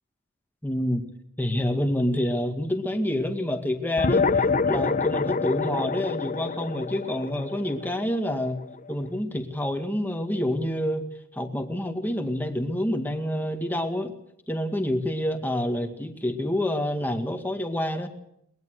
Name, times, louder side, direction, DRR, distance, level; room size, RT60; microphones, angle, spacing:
voice 1, 0.6-1.0 1.4-8.6 8.9-11.1 11.3-14.1 14.5-18.1, left 1 dB, 10° left, 4 dB, 2.1 m, -27 dB
sound 1, 4.0-8.8, left 4 dB, 40° left, 0.9 m, -26 dB
22.0 x 20.5 x 6.6 m, 0.75 s
head